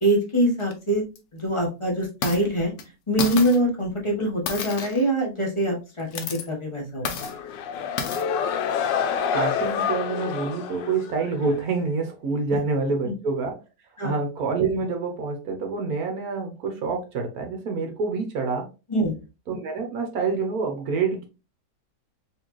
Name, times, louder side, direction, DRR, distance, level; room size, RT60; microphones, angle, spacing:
voice 1, 0.0-1.0 1.3-2.7 3.1-7.1 13.0-13.1 14.0-14.1 18.9-19.1, right 1 dB, 20° left, -2 dB, 0.9 m, -24 dB
sound 1, 0.6-0.7 1.1-1.2 2.0-2.4 2.8-2.9 3.2-3.6 4.5-5.1 6.0-6.4 7.0-7.3 8.0-8.2, left 5 dB, 65° left, 1.1 m, -30 dB
sound 2, 7.2-11.7, left 7 dB, 85° left, 1.3 m, -28 dB
voice 2, 9.3-13.5 14.0-18.7 19.5-21.3, right 4 dB, 60° right, 4 dB, 1.1 m, -27 dB
4.1 x 3.2 x 3.0 m, 0.29 s
omnidirectional pair, 1.9 m